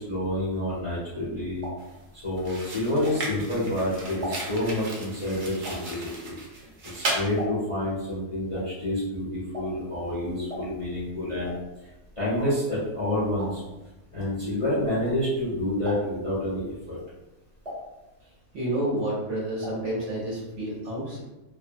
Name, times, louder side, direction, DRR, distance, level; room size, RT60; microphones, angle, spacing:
voice 1, 0.0-1.6 2.1-6.4 6.8-11.6 12.2-13.6 14.1-17.0, left 1 dB, 30° left, -10 dB, 0.7 m, -28 dB
sound 1, 1.5-3.6 4.0-7.9 8.2-15.5 15.8-16.4 16.8-18.6 18.8-19.9 20.2-20.3 20.5-20.6, left 1 dB, 30° right, 0.9 m, -41 dB
sound 2, 1.8-2.0 2.4-7.3, right 2 dB, 85° right, 0.4 m, -35 dB
voice 2, 18.2-21.2, right 1 dB, 60° right, -5 dB, 1.0 m, -30 dB
2.6 x 2.1 x 2.5 m, 1.0 s
omnidirectional pair, 1.5 m